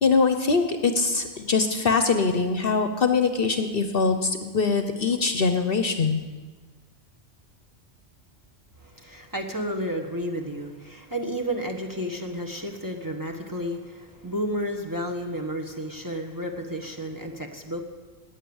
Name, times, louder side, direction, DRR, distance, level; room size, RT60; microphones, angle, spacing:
voice 1, 0.0-6.2, left 4 dB, 50° left, 7 dB, 1.0 m, -23 dB
voice 2, 8.8-17.8, equal, 15° right, 1 dB, 1.4 m, -32 dB
17.5 x 9.7 x 7.2 m, 1.4 s
omnidirectional pair, 1.3 m